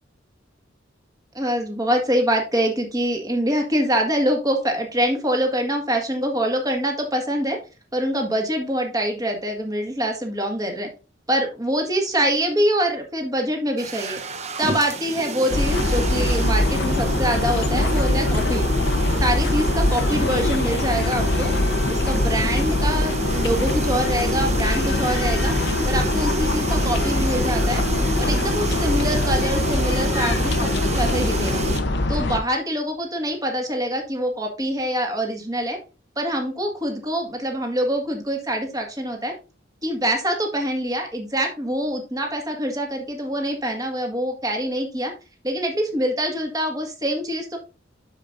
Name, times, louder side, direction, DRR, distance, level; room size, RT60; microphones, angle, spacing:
voice 1, 1.3-7.6 7.9-10.9 11.3-14.2 14.6-18.7 19.2-21.5 21.9-25.5 25.9-27.8 28.2-31.6 32.1-35.8 36.2-39.3 39.8-45.1 45.4-47.6, equal, 20° right, 2 dB, 1.8 m, -25 dB
sound 1, 13.8-31.8, right 2 dB, 35° right, 0.8 m, -29 dB
sound 2, 15.5-32.4, left 2 dB, 65° left, 0.8 m, -22 dB
12.0 x 5.0 x 2.6 m, 0.32 s
head